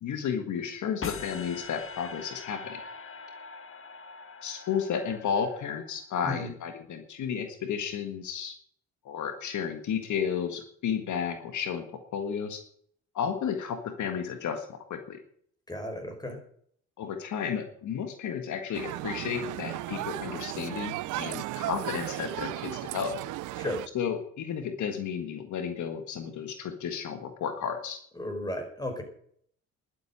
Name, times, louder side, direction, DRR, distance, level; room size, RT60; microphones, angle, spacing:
voice 1, 0.0-2.8 4.4-8.5 9.0-11.9 12.1-12.6 13.1-15.2 17.0-23.2 23.9-28.0, left 7 dB, 75° left, 7 dB, 1.8 m, -32 dB
sound 1, 1.0-6.2, left 5 dB, 45° left, 1.6 m, -42 dB
voice 2, 15.7-16.4 23.6-23.8 28.2-29.0, left 1 dB, 15° left, 4 dB, 5.3 m, -34 dB
sound 2, 18.7-23.9, right 16 dB, 85° right, 0.6 m, -35 dB
11.5 x 8.1 x 10.0 m, 0.62 s
cardioid pair, 90°, 30 cm